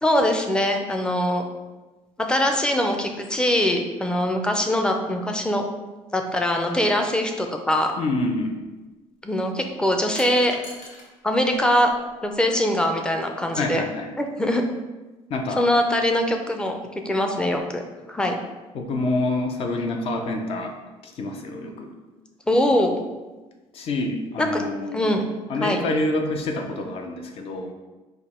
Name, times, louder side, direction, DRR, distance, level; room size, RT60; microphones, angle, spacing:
voice 1, 0.0-1.5 2.3-5.6 6.1-7.9 9.2-10.6 11.2-11.9 12.2-13.8 14.2-14.6 15.6-16.8 17.0-17.8 18.1-18.3 22.5-22.9 24.4-24.6 24.9-25.2 25.6-25.8, left 1 dB, 5° left, 3 dB, 0.5 m, -22 dB
voice 2, 8.0-8.6 13.6-14.1 15.3-15.7 18.7-20.8 21.0-21.9 23.7-25.2 25.5-27.7, left 2 dB, 55° left, 4 dB, 0.6 m, -27 dB
sound 1, 10.1-11.1 11.5-12.3, left 1 dB, 90° left, 1.1 m, -43 dB
5.0 x 2.2 x 4.2 m, 1.2 s
cardioid pair, 125°, 12 cm